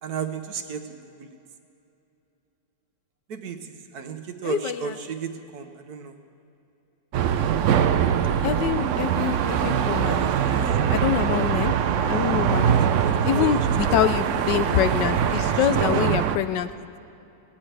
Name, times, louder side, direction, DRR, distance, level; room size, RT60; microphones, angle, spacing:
voice 1, 0.0-1.4 3.3-6.2 10.5-10.9 13.0-14.1 15.4-15.9, right 6 dB, 60° right, 7 dB, 1.3 m, -34 dB
sound 1, 7.1-16.4, right 8 dB, 90° right, 0.6 m, -22 dB
voice 2, 8.4-12.8 13.3-16.7, left 11 dB, 75° left, 12 dB, 1.2 m, -26 dB
19.0 x 17.5 x 3.3 m, 2.7 s
omnidirectional pair, 2.0 m